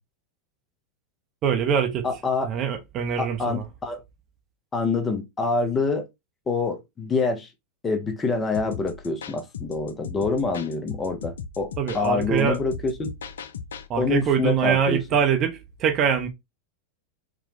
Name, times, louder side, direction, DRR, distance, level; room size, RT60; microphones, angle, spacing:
voice 1, 1.4-2.1 2.4-3.6 11.8-12.6 13.9-16.3, right 7 dB, 35° right, 0.6 m, -23 dB
voice 2, 2.0-2.5 3.2-4.0 4.7-6.1 6.5-7.5 7.8-13.1 14.0-15.0, left 4 dB, 20° left, 0.6 m, -26 dB
sound 1, 8.5-13.9, left 6 dB, 65° left, 0.4 m, -38 dB
4.0 x 2.2 x 2.6 m
figure-of-eight pair, 90°, 0 cm